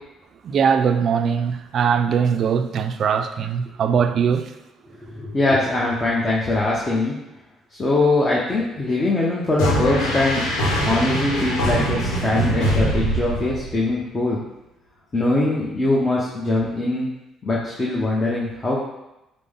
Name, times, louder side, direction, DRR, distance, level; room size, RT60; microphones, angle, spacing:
voice 1, 0.4-4.4, right 7 dB, 60° right, 0.3 m, -21 dB
voice 2, 5.0-7.2 7.7-10.4 10.8-14.4 15.1-17.1 17.4-18.8, left 2 dB, 30° left, 0.8 m, -22 dB
sound 1, 9.6-13.9, right 1 dB, 85° left, 0.9 m, -23 dB
5.1 x 2.1 x 3.6 m
supercardioid pair, 70°, 0 cm